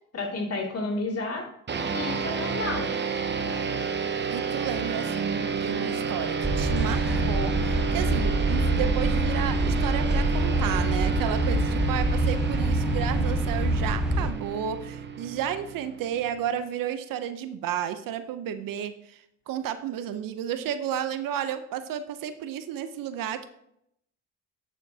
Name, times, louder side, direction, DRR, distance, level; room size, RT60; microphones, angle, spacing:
voice 1, 0.1-1.5 1.9-3.0, left 2 dB, 45° left, -1 dB, 2.6 m, -31 dB
sound 1, 1.7-16.5, right 5 dB, 35° right, 0.9 m, -30 dB
voice 2, 4.3-23.5, right 9 dB, 75° right, 10 dB, 0.8 m, -32 dB
sound 2, 6.4-14.3, right 1 dB, ahead, 1.0 m, -25 dB
9.0 x 7.0 x 2.8 m, 0.75 s
cardioid pair, 80°, 33 cm